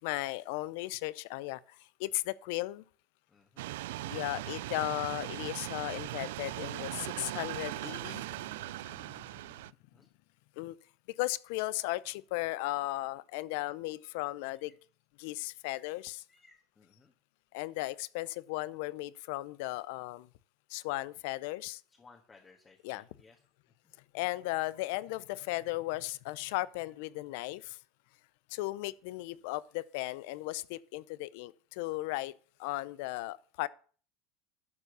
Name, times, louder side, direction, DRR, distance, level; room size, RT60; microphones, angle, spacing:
voice 1, 0.0-1.6 2.0-2.8 4.1-9.2 10.6-10.7 11.2-14.7 15.2-16.2 17.5-20.3 20.7-21.8 22.8-23.1 24.1-27.8 28.5-32.3 32.6-33.7, left 19 dB, 75° left, 0.5 m, -36 dB
voice 2, 3.3-3.6 9.9-10.1 16.3-17.1 21.9-23.4 23.8-23.9 26.8-26.9, left 4 dB, 25° left, 1.5 m, -61 dB
sound 1, 3.6-9.7, right 16 dB, 85° right, 0.3 m, -39 dB
12.0 x 4.5 x 6.7 m
supercardioid pair, 115°, 0 cm